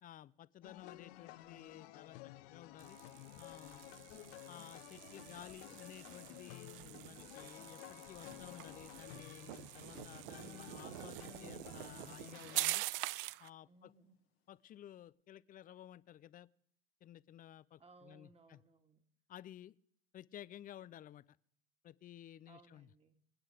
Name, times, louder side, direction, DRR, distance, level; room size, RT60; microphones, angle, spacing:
voice 1, 0.0-3.0 3.4-3.9 4.5-12.8 13.4-13.9 14.5-16.5 17.0-18.6 19.3-19.8 20.1-21.4 21.8-22.9, left 11 dB, 30° left, 19 dB, 0.5 m, -54 dB
sound 1, 0.6-12.7, left 17 dB, 65° left, 0.8 m, -54 dB
sound 2, 2.8-13.5, right 20 dB, 65° right, 0.5 m, -45 dB
voice 2, 3.9-4.3 13.6-14.2 17.8-19.0 22.5-23.2, right 3 dB, 20° right, 5 dB, 2.1 m, -64 dB
Thunder / Rain, 6.3-15.1, left 11 dB, 80° left, 2.2 m, -70 dB
25.5 x 9.0 x 5.1 m, 0.64 s
hypercardioid pair, 90°, 30 cm